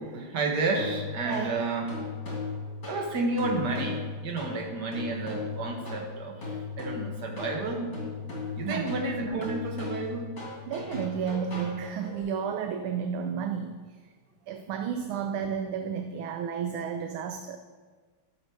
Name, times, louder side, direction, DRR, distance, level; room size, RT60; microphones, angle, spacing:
voice 1, 0.0-2.0 2.9-6.4 6.8-8.0 8.6-10.4, right 3 dB, 50° right, 1 dB, 2.0 m, -31 dB
sound 1, 0.7-12.2, left 4 dB, 50° left, 3.8 m, -37 dB
voice 2, 1.2-1.6 8.6-9.0 9.3-9.5 10.7-13.8 14.5-17.6, right 7 dB, 75° right, 7 dB, 1.4 m, -32 dB
14.5 x 6.5 x 4.7 m, 1.5 s
omnidirectional pair, 2.4 m